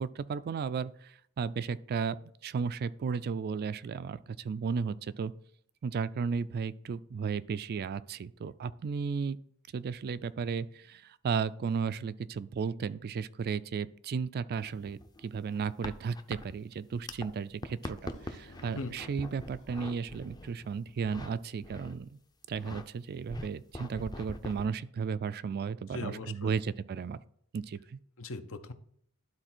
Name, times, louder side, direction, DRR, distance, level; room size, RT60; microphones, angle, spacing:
voice 1, 0.0-2.2 2.4-5.3 5.8-9.4 9.7-22.2 22.5-27.2 27.5-28.0, right 5 dB, 45° right, 16 dB, 0.3 m, -34 dB
sound 1, 14.5-17.3 17.5-21.3 21.6-22.0 22.4-22.8 23.3-24.7, left 1 dB, 20° left, 0.6 m, -43 dB
sound 2, 17.8-20.9, equal, 80° left, 2.1 m, -56 dB
voice 2, 25.9-26.6 28.2-28.7, left 3 dB, 65° left, 9 dB, 0.7 m, -39 dB
11.5 x 4.1 x 4.4 m, 0.67 s
head